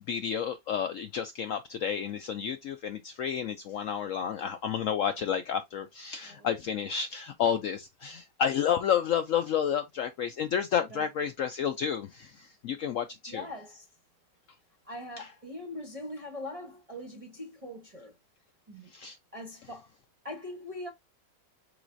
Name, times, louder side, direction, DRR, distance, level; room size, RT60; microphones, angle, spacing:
voice 1, 0.0-13.4 18.9-19.2, left 8 dB, 70° left, 0.8 m, -30 dB
voice 2, 6.2-6.6 10.9-11.1 13.3-13.9 14.8-18.2 18.7-18.9 19.3-19.9 20.2-20.9, left 1 dB, 30° right, 0.7 m, -41 dB
4.7 x 4.0 x 2.5 m
omnidirectional pair, 1.8 m